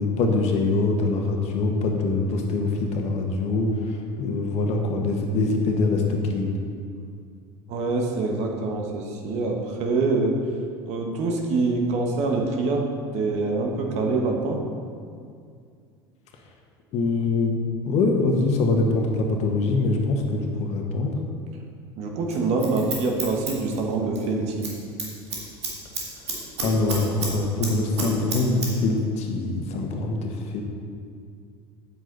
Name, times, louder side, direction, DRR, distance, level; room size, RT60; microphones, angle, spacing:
voice 1, 0.0-6.6 16.9-17.6 17.8-21.1 26.6-30.6, left 3 dB, 55° left, 2 dB, 1.5 m, -24 dB
voice 2, 7.7-10.4 10.8-12.9 13.1-14.6 22.0-24.7, right 3 dB, 55° right, 1 dB, 1.5 m, -25 dB
Scissors, 22.3-24.3 24.5-24.7 25.0-27.3 27.6-28.7 29.0-29.1, right 3 dB, 90° right, 1.8 m, -30 dB
9.7 x 7.7 x 4.1 m, 2.3 s
hypercardioid pair, 75°, 14 cm